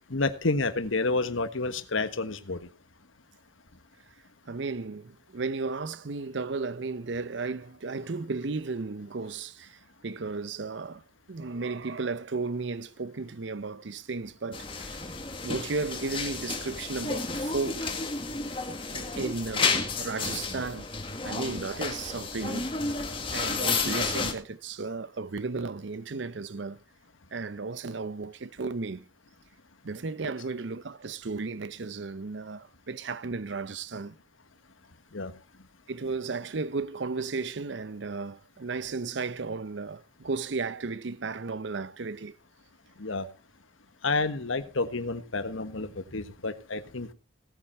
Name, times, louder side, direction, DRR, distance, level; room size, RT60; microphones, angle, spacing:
voice 1, 0.1-2.6 35.1-35.3 43.0-43.2 44.0-47.1, left 3 dB, 85° left, 1.4 m, -29 dB
voice 2, 4.5-9.8 10.0-11.0 11.3-15.0 15.4-17.9 18.9-20.9 21.2-22.7 23.3-26.8 27.3-29.0 29.8-34.1 35.9-42.3, right 4 dB, 70° right, 0.7 m, -34 dB
sound 1, 14.5-24.3, left 4 dB, 25° left, 1.9 m, -31 dB
17.5 x 9.0 x 4.3 m
head